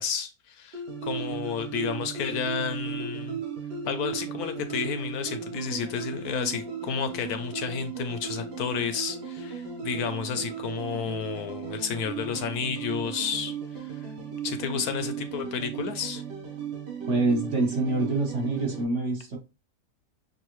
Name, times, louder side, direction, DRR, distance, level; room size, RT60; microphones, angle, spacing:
voice 1, 0.0-3.4 3.9-13.5 13.8-13.9 14.4-16.2, left 6 dB, 70° left, 1.0 m, -31 dB
sound 1, 0.7-18.8, right 6 dB, 80° right, 1.8 m, -36 dB
voice 2, 17.1-19.4, right 2 dB, 50° right, 1.3 m, -26 dB
6.1 x 2.6 x 3.0 m
omnidirectional pair, 1.8 m